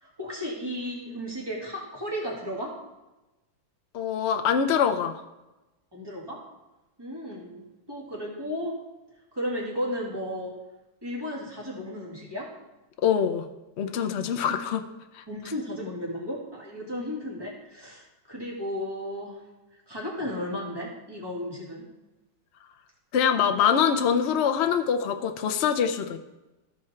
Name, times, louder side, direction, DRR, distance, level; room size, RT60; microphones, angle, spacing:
voice 1, 0.0-2.7 5.9-6.4 7.0-8.8 9.3-10.5 11.0-12.5 15.3-19.4 19.9-21.9, equal, 15° right, -4 dB, 2.1 m, -34 dB
voice 2, 3.9-5.1 13.0-13.4 13.8-14.8 23.1-26.2, left 7 dB, 80° left, 6 dB, 0.6 m, -24 dB
13.5 x 4.8 x 4.3 m, 1.0 s
omnidirectional pair, 2.0 m